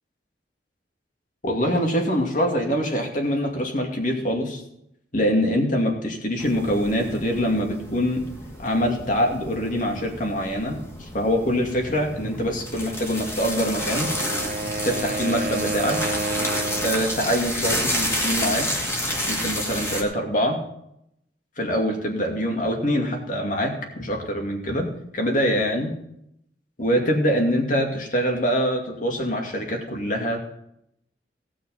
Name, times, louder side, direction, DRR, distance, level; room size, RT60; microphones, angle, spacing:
voice 1, 1.4-4.6 5.1-8.2 8.6-10.8 11.1-14.1 14.8-16.0 16.8-18.6 19.3-20.6 21.6-24.9 25.1-25.9 26.8-30.4, equal, 50° left, 2 dB, 2.3 m, -24 dB
sound 1, 6.4-20.0, equal, 15° left, 2.1 m, -30 dB
Wind instrument woodwind instrument, 13.6-17.2, right 2 dB, 45° right, 0.7 m, -30 dB
17.5 x 6.3 x 5.6 m, 0.77 s
head